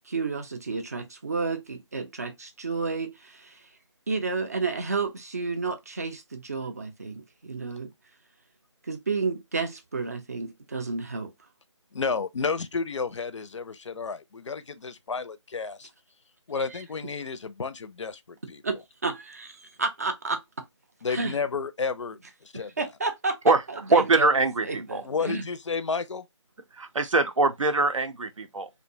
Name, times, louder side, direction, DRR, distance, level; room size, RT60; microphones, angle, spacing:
voice 1, 0.1-3.7 4.1-7.9 8.8-11.3 16.7-16.8 18.4-20.4 21.1-21.4 22.5-24.3 24.6-25.4, right 4 dB, 30° right, 0.4 m, -31 dB
voice 2, 11.9-15.9 16.5-18.6 21.0-22.9 25.0-26.2, left 5 dB, 70° left, 0.4 m, -31 dB
voice 3, 23.9-25.0 26.8-28.7, right 3 dB, 85° right, 0.6 m, -23 dB
2.6 x 2.2 x 2.6 m
figure-of-eight pair, 160°, 16 cm